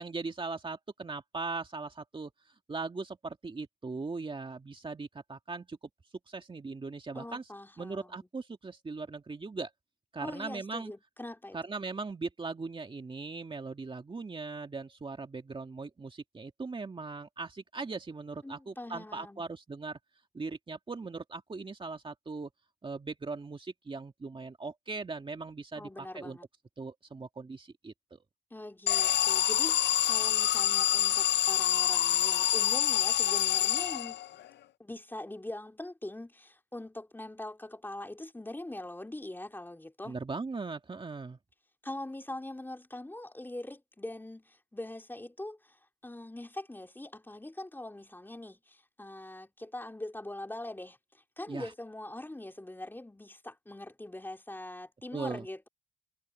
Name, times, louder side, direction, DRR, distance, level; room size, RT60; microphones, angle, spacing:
voice 1, 0.0-2.3 2.7-5.8 6.3-7.4 7.8-9.7 10.1-10.9 11.5-20.0 20.3-22.5 22.8-26.4 26.8-28.2 40.0-41.4 51.5-51.7 55.1-55.5, right 4 dB, 25° right, 2.2 m, -39 dB
voice 2, 7.1-8.3 10.2-11.6 18.4-19.4 25.7-26.4 28.5-34.2 34.8-40.1 41.8-55.7, left 1 dB, 10° left, 3.3 m, -43 dB
Alarm, 28.9-34.4, left 12 dB, 60° left, 0.5 m, -26 dB
cardioid pair, 90°, 20 cm